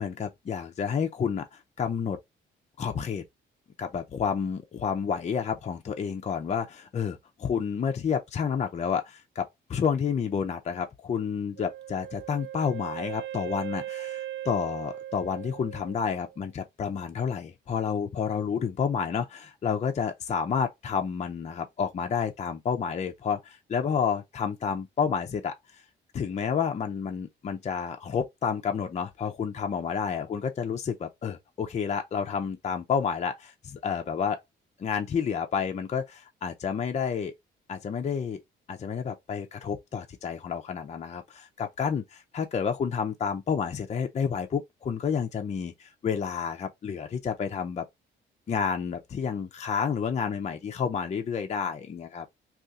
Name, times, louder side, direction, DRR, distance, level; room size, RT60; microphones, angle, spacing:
voice 1, 0.0-2.2 2.8-3.2 3.8-25.5 26.1-34.4 34.8-37.3 37.7-38.4 38.7-47.9 48.5-52.2, left 6 dB, 35° left, 0.5 m, -30 dB
Wind instrument woodwind instrument, 11.6-16.4, right 12 dB, 70° right, 0.4 m, -39 dB
2.6 x 2.4 x 3.4 m
cardioid pair, 90°, 20 cm